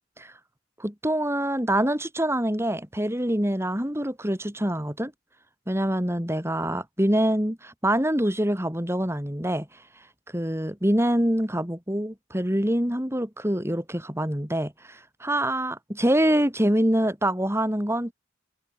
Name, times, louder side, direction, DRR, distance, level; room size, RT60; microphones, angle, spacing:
voice 1, 0.8-5.1 5.7-10.1 10.3-18.1, right 1 dB, 15° right, 4.8 m, -25 dB
head